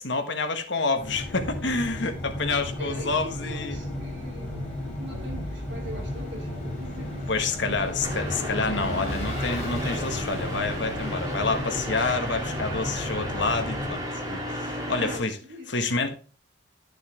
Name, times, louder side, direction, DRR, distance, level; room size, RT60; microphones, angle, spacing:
voice 1, 0.0-3.8 7.3-15.3 15.7-16.2, left 3 dB, 60° left, 1.5 m, -28 dB
sound 1, 1.0-13.9, left 1 dB, 5° left, 4.2 m, -35 dB
voice 2, 2.8-7.3 7.6-8.2 15.0-15.9, equal, 60° right, 2.9 m, -42 dB
Vehicle / Engine, 3.6-13.3, equal, 35° left, 3.8 m, -40 dB
sound 2, 8.0-15.2, equal, 20° right, 2.8 m, -33 dB
11.5 x 6.8 x 3.4 m
head